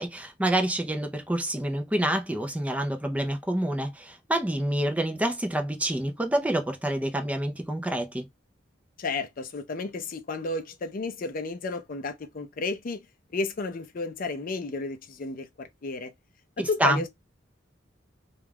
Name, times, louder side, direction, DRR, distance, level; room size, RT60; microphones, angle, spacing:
voice 1, 0.0-8.3 16.6-17.0, right 1 dB, 5° right, 0.4 m, -27 dB
voice 2, 9.0-13.1 13.3-16.1 16.6-17.1, left 3 dB, 45° left, 0.5 m, -32 dB
2.3 x 2.2 x 3.3 m
head